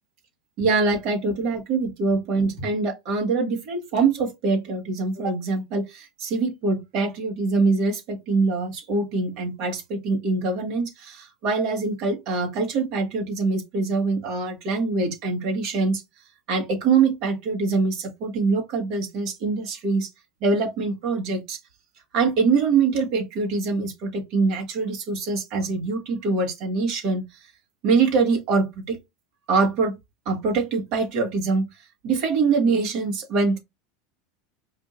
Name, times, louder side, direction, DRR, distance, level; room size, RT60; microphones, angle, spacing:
voice 1, 0.6-16.0 16.5-20.1 20.4-21.6 22.1-27.2 27.8-29.0 29.5-30.0 30.2-31.7 32.0-33.6, right 4 dB, 55° right, 1.7 m, -24 dB
4.9 x 2.7 x 2.5 m
hypercardioid pair, 105°, 0 cm